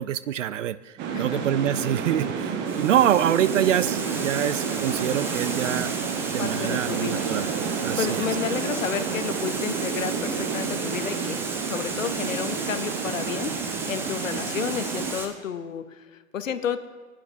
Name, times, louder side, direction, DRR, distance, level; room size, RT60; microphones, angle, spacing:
voice 1, 0.0-5.9 6.3-7.5 7.8-8.3, right 11 dB, 65° right, 17 dB, 0.5 m, -25 dB
sound 1, 1.0-15.1, right 6 dB, 25° right, 0.9 m, -30 dB
voice 2, 1.1-1.4 6.4-7.3 7.7-16.8, left 8 dB, 70° left, 12 dB, 0.7 m, -32 dB
Water, 2.7-15.3, right 3 dB, 5° right, 0.4 m, -35 dB
17.0 x 8.7 x 2.6 m, 1.4 s
figure-of-eight pair, 95°, 40 cm